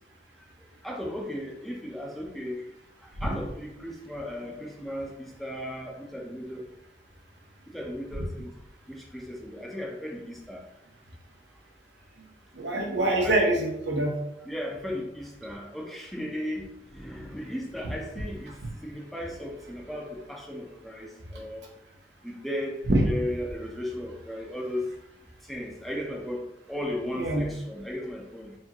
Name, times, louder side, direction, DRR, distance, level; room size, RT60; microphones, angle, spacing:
voice 1, 0.4-2.7 3.0-6.7 7.7-8.5 8.9-10.7 12.9-13.4 14.4-21.7 22.2-24.9 25.4-28.5, left 1 dB, ahead, -1 dB, 0.6 m, -36 dB
voice 2, 12.5-14.1 22.9-23.1 27.2-27.5, right 1 dB, 80° right, 1 dB, 0.9 m, -24 dB
4.5 x 2.8 x 2.9 m, 0.86 s
head